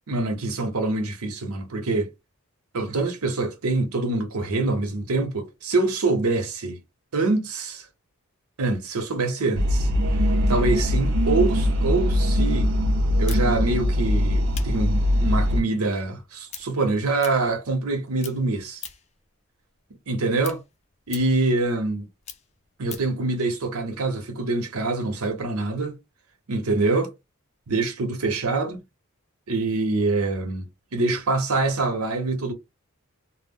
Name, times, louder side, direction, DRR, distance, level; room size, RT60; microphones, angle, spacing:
voice 1, 0.1-2.1 2.7-6.8 7.1-7.9 8.6-9.9 10.5-12.7 13.2-18.8 20.1-20.6 21.1-22.1 22.8-25.9 26.5-27.1 27.7-28.8 29.5-30.6 30.9-32.5, right 3 dB, 90° right, 0.7 m, -25 dB
sound 1, 9.5-15.6, equal, 60° right, 0.4 m, -21 dB
sound 2, 13.3-17.9 18.2-19.2 19.6-23.2, left 8 dB, 30° left, 0.4 m, -42 dB
2.2 x 2.0 x 3.5 m
head